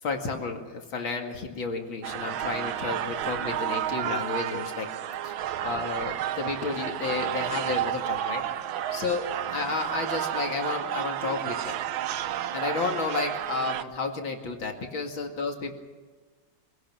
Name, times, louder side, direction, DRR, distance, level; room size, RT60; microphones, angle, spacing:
voice 1, 0.0-4.9 5.2-5.3 5.6-8.4 8.9-9.2 9.5-11.8 12.5-15.7, left 4 dB, 75° left, 3 dB, 3.0 m, -31 dB
sound 1, 2.0-13.8, right 11 dB, 80° right, 1.7 m, -31 dB
25.0 x 18.0 x 7.6 m, 1.4 s
omnidirectional pair, 2.2 m